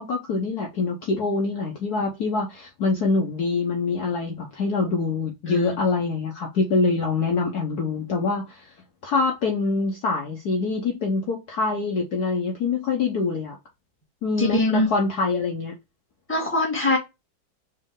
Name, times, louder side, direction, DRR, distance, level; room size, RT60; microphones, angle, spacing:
voice 1, 0.0-8.7 9.0-13.6 14.2-15.7, left 4 dB, 60° left, 1.2 m, -25 dB
voice 2, 5.5-5.8 14.4-14.9 16.3-17.0, left 2 dB, 5° left, 1.7 m, -22 dB
4.4 x 3.1 x 3.6 m
omnidirectional pair, 2.1 m